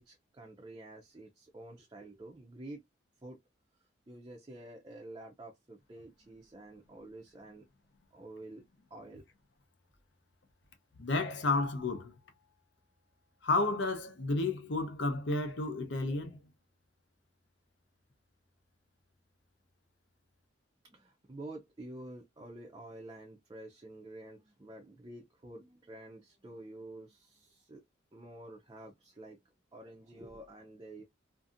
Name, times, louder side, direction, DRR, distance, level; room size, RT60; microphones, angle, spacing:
voice 1, 0.0-2.8 3.2-3.4 4.1-7.6 8.1-8.6 8.9-9.2 20.8-27.8 28.1-29.4 29.7-31.0, right 1 dB, 20° right, 0.4 m, -49 dB
voice 2, 11.0-12.1 13.4-16.4, left 3 dB, 65° left, 0.6 m, -31 dB
2.6 x 2.5 x 2.5 m
head